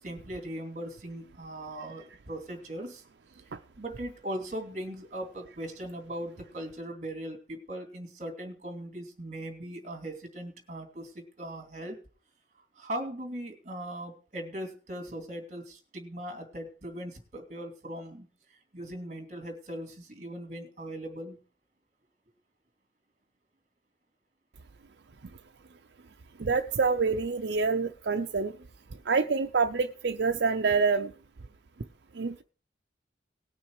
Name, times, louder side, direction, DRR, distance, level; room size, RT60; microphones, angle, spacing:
voice 1, 0.0-3.0 3.8-12.0 12.7-18.3 18.7-21.4, right 1 dB, 40° right, 6 dB, 2.7 m, -39 dB
voice 2, 26.4-28.5 29.1-31.1 32.1-32.4, right 4 dB, 75° right, 6 dB, 0.6 m, -26 dB
19.0 x 6.3 x 4.8 m, 0.38 s
head